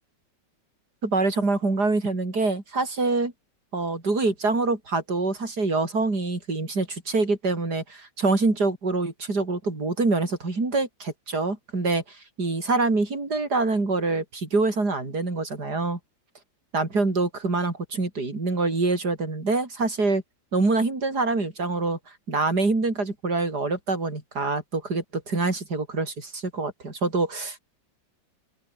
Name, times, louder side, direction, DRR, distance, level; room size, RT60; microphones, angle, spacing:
voice 1, 1.0-3.3 3.7-16.0 16.7-20.2 20.5-22.0 22.3-27.6, right 3 dB, 55° right, 5.4 m, -25 dB
open air
omnidirectional pair, 2.0 m